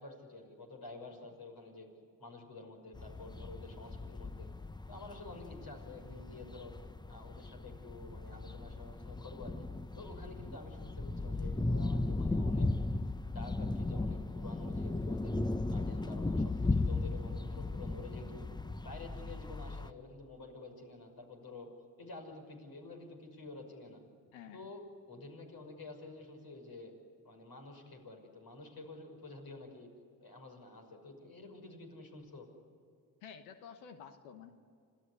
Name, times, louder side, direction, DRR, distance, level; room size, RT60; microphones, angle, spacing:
voice 1, 0.0-1.9 2.2-4.5 4.9-6.7 7.1-9.7 10.0-12.7 13.2-15.3 15.7-18.5 18.8-21.7 22.0-24.0 24.5-24.8 25.1-26.9 27.2-29.9 30.2-32.5, left 2 dB, 55° left, 3 dB, 6.1 m, -50 dB
sound 1, 2.9-19.9, left 2 dB, 10° left, 0.9 m, -36 dB
voice 2, 33.2-34.5, left 7 dB, 90° left, 8 dB, 1.2 m, -50 dB
26.5 x 16.5 x 9.9 m, 2.3 s
hypercardioid pair, 40°, 43 cm